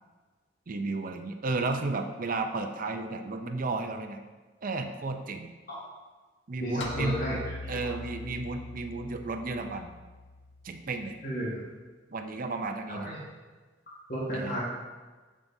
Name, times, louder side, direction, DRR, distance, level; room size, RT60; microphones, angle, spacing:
voice 1, 0.7-4.2 4.6-5.5 6.5-7.2 7.7-9.9 10.6-11.2 12.1-13.1 14.3-14.6, right 3 dB, 45° right, 6 dB, 0.6 m, -33 dB
voice 2, 6.6-7.9 11.2-11.6 12.9-13.2 14.1-14.6, equal, 50° left, -7 dB, 1.6 m, -33 dB
sound 1, 6.8-11.2, left 3 dB, 65° left, 0.7 m, -42 dB
7.4 x 7.3 x 2.7 m, 1.3 s
head